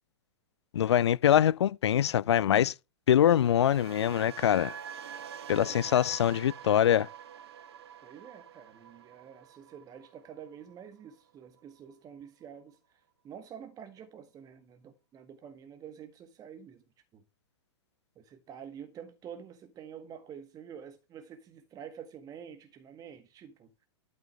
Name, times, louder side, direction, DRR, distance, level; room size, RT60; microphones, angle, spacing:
voice 1, 0.7-2.7 3.1-4.7 5.5-7.1, left 10 dB, 70° left, 0.5 m, -24 dB
sound 1, 3.2-11.3 11.6-11.9, right 8 dB, 60° right, 1.6 m, -47 dB
voice 2, 5.5-6.1 8.0-16.8 17.1-17.2 18.1-23.7, right 8 dB, 25° right, 1.6 m, -48 dB
12.0 x 6.4 x 5.5 m
hypercardioid pair, 110°, 15 cm